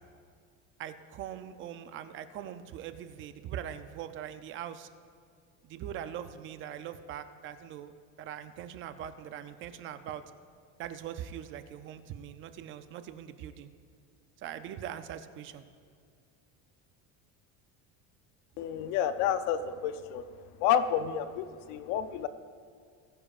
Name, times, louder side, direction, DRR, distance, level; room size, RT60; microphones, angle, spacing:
voice 1, 0.8-4.9 5.6-7.9 8.2-10.2 10.8-13.7 14.4-15.7, right 10 dB, 35° right, 11 dB, 0.5 m, -41 dB
voice 2, 18.6-20.3 20.6-22.3, left 9 dB, 55° left, 11 dB, 0.7 m, -29 dB
20.5 x 10.0 x 2.4 m, 2.2 s
cardioid pair, 170°, 36 cm